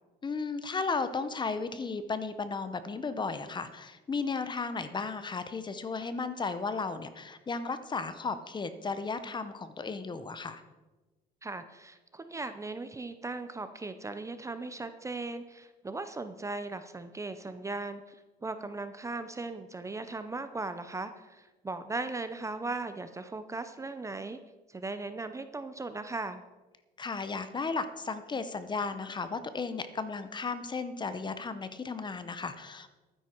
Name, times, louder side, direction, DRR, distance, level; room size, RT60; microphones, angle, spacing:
voice 1, 0.2-10.6 27.0-32.9, left 4 dB, 25° left, 12 dB, 0.9 m, -34 dB
voice 2, 11.4-24.4 24.7-26.4, right 3 dB, 15° right, 10 dB, 0.7 m, -38 dB
12.5 x 9.8 x 4.5 m, 1.2 s
cardioid pair, 110°, 17 cm